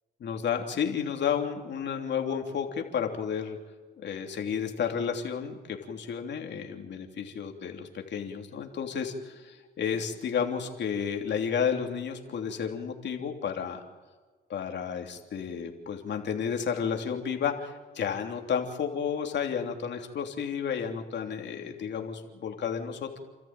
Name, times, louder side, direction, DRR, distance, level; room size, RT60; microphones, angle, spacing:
voice 1, 0.2-3.6 4.0-13.8 14.5-23.2, left 7 dB, 65° left, 3 dB, 3.2 m, -32 dB
29.5 x 13.5 x 9.0 m, 1.4 s
cardioid pair, 90°, 20 cm